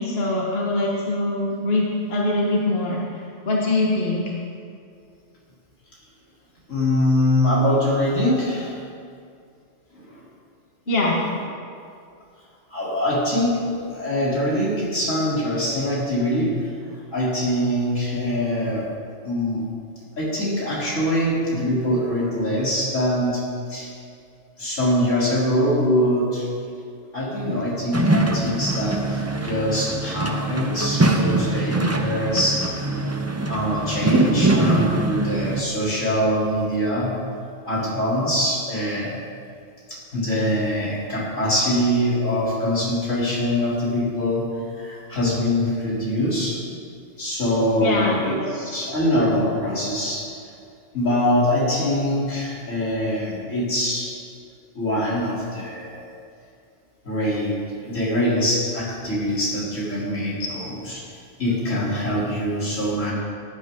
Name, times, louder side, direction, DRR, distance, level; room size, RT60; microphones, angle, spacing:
voice 1, 0.0-4.2 10.9-11.2 47.8-48.5 60.4-60.5, left 2 dB, 50° left, -3 dB, 1.7 m, -23 dB
voice 2, 6.7-8.8 9.9-10.2 12.7-16.6 17.1-18.8 19.2-19.7 20.2-23.9 24.6-26.5 27.1-32.7 33.5-37.2 37.7-39.1 39.9-44.5 44.8-46.6 47.2-50.3 50.9-54.1 54.7-56.0 57.0-61.1 61.4-63.1, equal, 90° left, -8 dB, 4.0 m, -23 dB
sound 1, 27.9-35.6, right 2 dB, 15° right, 0.6 m, -23 dB
18.0 x 10.5 x 3.8 m, 2.4 s
omnidirectional pair, 1.3 m